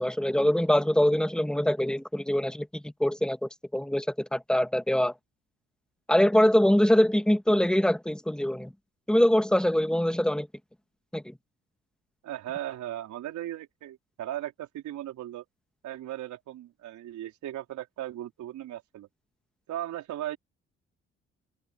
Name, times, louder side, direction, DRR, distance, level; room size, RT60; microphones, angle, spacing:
voice 1, 0.0-5.1 6.1-8.7 9.1-10.5 11.1-11.2, left 1 dB, 5° left, 2.1 m, -24 dB
voice 2, 12.2-15.4 15.8-19.1 19.7-20.4, right 13 dB, 70° right, 4.3 m, -37 dB
hypercardioid pair, 45°, 31 cm